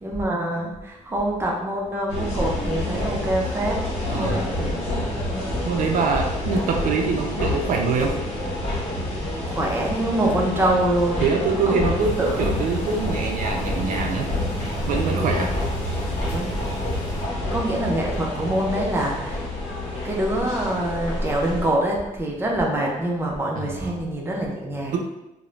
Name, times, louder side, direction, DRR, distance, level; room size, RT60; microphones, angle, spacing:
voice 1, 0.0-4.8 9.5-11.3 11.7-12.4 16.0-16.6 17.5-19.4 20.0-25.0, right 1 dB, 15° right, -1 dB, 0.4 m, -25 dB
sound 1, 2.1-21.7, left 1 dB, 50° left, 0.8 m, -28 dB
voice 2, 4.1-4.4 5.6-8.2 11.2-14.3 14.9-15.6 23.6-23.9 24.9-25.0, right 4 dB, 75° right, 2 dB, 0.4 m, -24 dB
sound 2, 12.0-17.2, right 1 dB, 20° left, 1.3 m, -32 dB
2.4 x 2.0 x 3.0 m, 0.94 s
wide cardioid pair, 170°, 14 cm